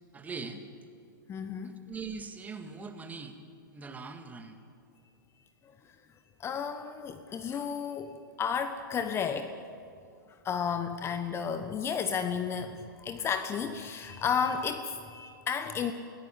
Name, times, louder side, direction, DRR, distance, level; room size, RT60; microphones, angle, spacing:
voice 1, 0.1-0.6 1.6-3.4 3.7-4.6, right 4 dB, 15° right, 7 dB, 2.0 m, -41 dB
voice 2, 1.3-1.8 6.4-9.5 10.4-15.9, left 7 dB, 25° left, 8 dB, 1.1 m, -32 dB
23.0 x 17.0 x 8.9 m, 2.5 s
hypercardioid pair, 110°, 11 cm